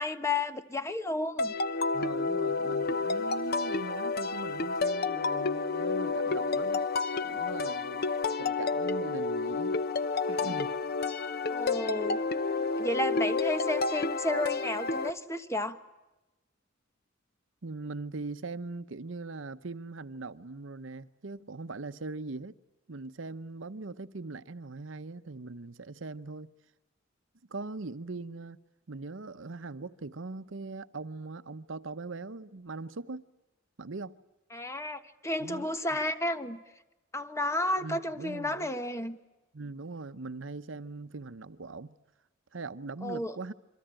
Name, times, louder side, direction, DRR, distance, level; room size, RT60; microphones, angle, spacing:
voice 1, 0.0-1.5 11.5-12.2 12.8-15.8 34.5-36.6 37.1-39.2 43.0-43.3, left 1 dB, 15° left, 1.3 m, -32 dB
sound 1, 1.4-15.1, left 4 dB, 50° left, 0.9 m, -30 dB
voice 2, 1.9-6.8 7.2-8.1 8.4-9.7 10.3-10.7 17.6-22.5 22.9-26.5 27.5-28.6 28.9-33.3 33.8-34.1 35.4-36.0 37.8-38.7 39.5-41.9 42.5-43.5, right 3 dB, 75° right, 0.9 m, -41 dB
27.5 x 23.5 x 9.0 m
head